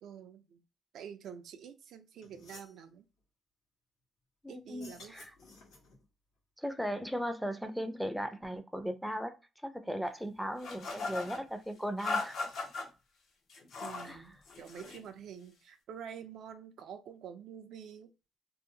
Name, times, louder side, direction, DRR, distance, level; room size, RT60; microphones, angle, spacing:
voice 1, 0.0-0.6 0.9-3.1 4.5-5.2 9.8-10.1 13.8-18.1, right 8 dB, 75° right, 8 dB, 0.4 m, -48 dB
sound 1, 1.8-1.9 2.2-2.8 4.7-6.0, left 3 dB, 90° left, 1.2 m, -54 dB
voice 2, 4.4-5.3 6.6-9.3 9.6-12.4 14.0-14.2, equal, ahead, 8 dB, 0.4 m, -37 dB
sound 2, 10.6-11.4 12.0-12.9 13.5-14.1 14.5-15.0, left 3 dB, 70° left, 0.7 m, -37 dB
2.6 x 2.0 x 2.6 m, 0.30 s
cardioid pair, 90°, 0 cm